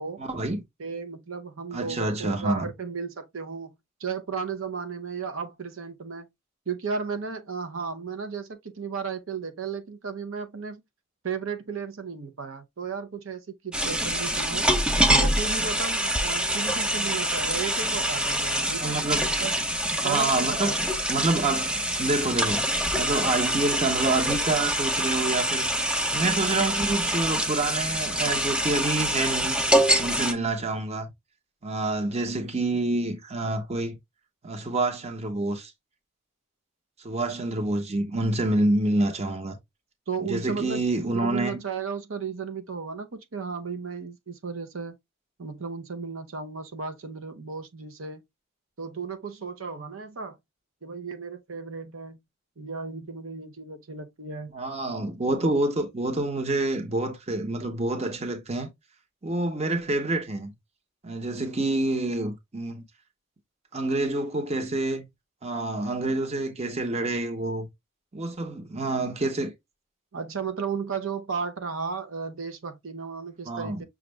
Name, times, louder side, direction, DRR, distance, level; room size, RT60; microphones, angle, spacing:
voice 1, 0.2-0.6 1.7-2.7 18.8-19.3 20.0-22.7 23.0-25.7 26.1-29.6 30.0-31.1 31.6-34.0 34.4-35.7 37.0-39.6 40.2-41.6 54.5-58.7 59.2-60.5 61.0-62.8 63.7-65.0 65.4-67.7 68.1-69.5 73.5-73.8, right 2 dB, 30° right, 0.9 m, -27 dB
voice 2, 0.8-6.3 6.7-10.8 11.2-14.7 15.2-19.0 19.4-19.6 20.0-20.8 40.1-40.8 41.1-44.9 45.4-48.2 48.8-50.4 50.8-52.2 52.6-54.5 70.1-73.8, right 5 dB, 80° right, 0.8 m, -34 dB
sound 1, 13.7-30.3, right 1 dB, 5° right, 0.5 m, -25 dB
6.1 x 2.5 x 3.2 m
head